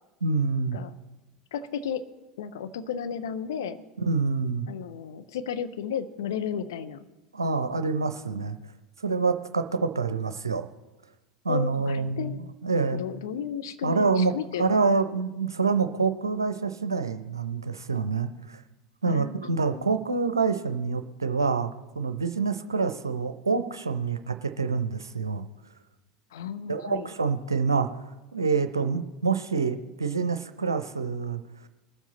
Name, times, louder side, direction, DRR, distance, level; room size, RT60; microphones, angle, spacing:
voice 1, 0.2-0.8 4.0-4.7 7.3-8.6 9.0-10.7 11.4-13.0 13.8-14.3 14.6-18.6 19.0-25.5 26.7-27.9 28.3-31.4, right 4 dB, 85° right, 10 dB, 0.6 m, -27 dB
voice 2, 1.5-2.1 2.4-3.9 4.7-7.1 11.5-12.4 12.9-14.8 19.0-20.0 26.3-27.1, left 8 dB, 70° left, 11 dB, 0.6 m, -34 dB
21.0 x 7.3 x 4.1 m, 1.1 s
figure-of-eight pair, 80°, 2 cm